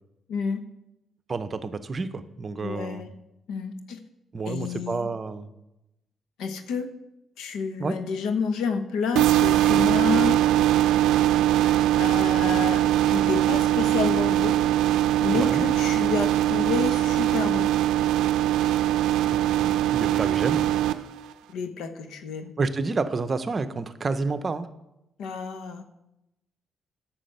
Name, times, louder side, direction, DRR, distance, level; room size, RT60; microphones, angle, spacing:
voice 1, 0.3-0.7 2.6-3.1 3.5-4.0 4.5-5.1 6.4-6.9 7.4-10.4 11.6-14.6 15.2-17.7 21.5-22.5 25.2-25.8, left 5 dB, 80° left, 8 dB, 1.0 m, -29 dB
voice 2, 1.3-3.1 4.3-5.5 7.8-7.9 15.3-15.7 19.6-20.7 22.6-24.7, right 4 dB, 35° right, 11 dB, 0.7 m, -29 dB
sound 1, 9.2-20.9, right 13 dB, 90° right, 0.5 m, -21 dB
9.7 x 6.2 x 6.6 m, 0.91 s
cardioid pair, 90°, 0 cm